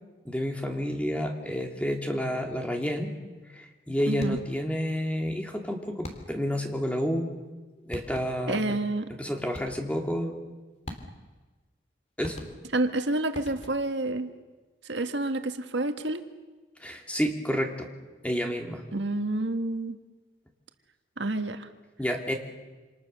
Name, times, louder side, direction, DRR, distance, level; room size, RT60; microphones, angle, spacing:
voice 1, 0.2-3.1 3.5-7.3 7.9-8.8 9.2-10.3 12.2-12.4 16.8-17.9 18.2-18.8 22.0-22.3, equal, 5° left, 2 dB, 2.8 m, -30 dB
sound 1, 4.1-4.6 6.0-6.6 7.6-7.7 7.9-8.6 9.5-10.0 10.9-11.4 12.2-12.9 13.3-14.0, left 1 dB, 35° left, 3.1 m, -42 dB
voice 2, 4.1-4.4 8.5-9.1 12.7-14.3 14.8-16.2 18.9-20.0 21.2-21.7, right 2 dB, 75° right, 7 dB, 1.6 m, -29 dB
27.5 x 27.5 x 6.8 m, 1.2 s
head